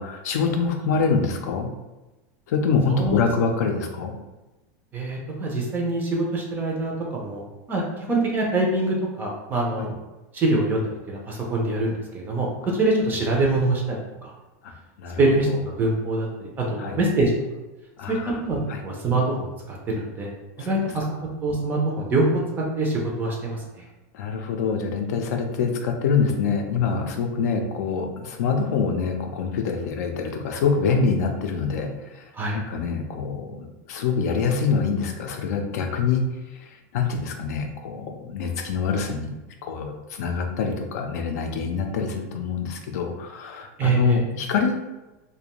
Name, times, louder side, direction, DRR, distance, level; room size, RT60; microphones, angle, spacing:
voice 1, 0.0-1.7 2.5-4.1 9.8-9.9 14.6-14.7 15.0-15.2 15.5-15.6 16.8-17.0 18.0-18.3 18.7-18.8 20.6-20.7 24.1-32.2 32.5-36.2 36.6-44.8, left 5 dB, 75° left, 4 dB, 0.4 m, -25 dB
voice 2, 4.9-7.4 7.7-9.9 10.3-14.0 14.2-14.3 15.2-17.3 18.1-20.3 20.6-22.3 22.8-23.9 32.3-32.6 43.8-44.2, right 2 dB, 20° right, -1 dB, 0.4 m, -24 dB
2.5 x 2.2 x 2.9 m, 1.1 s
supercardioid pair, 150°, 9 cm